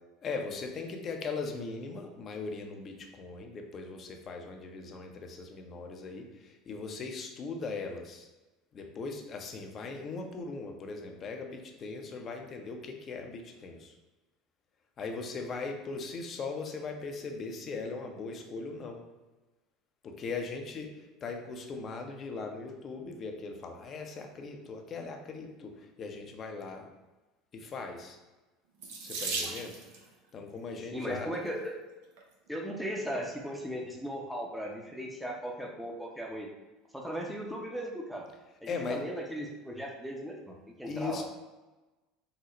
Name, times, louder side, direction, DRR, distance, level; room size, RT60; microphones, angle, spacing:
voice 1, 0.2-8.3 8.7-13.9 15.0-19.0 20.0-26.9 27.5-28.2 29.0-29.7 30.3-31.3 38.7-39.0 40.8-41.2, left 4 dB, 40° left, 3 dB, 0.5 m, -39 dB
Water tap faucet / Sink (filling or washing), 28.8-30.1 31.1-31.5 32.2-32.3 32.6-32.7, right 3 dB, 75° right, 0.5 m, -36 dB
voice 2, 30.9-31.8 32.5-36.5 36.9-38.3 38.6-41.2, equal, ahead, -1 dB, 0.6 m, -37 dB
3.8 x 2.0 x 3.0 m, 1.1 s
hypercardioid pair, 75°, 0 cm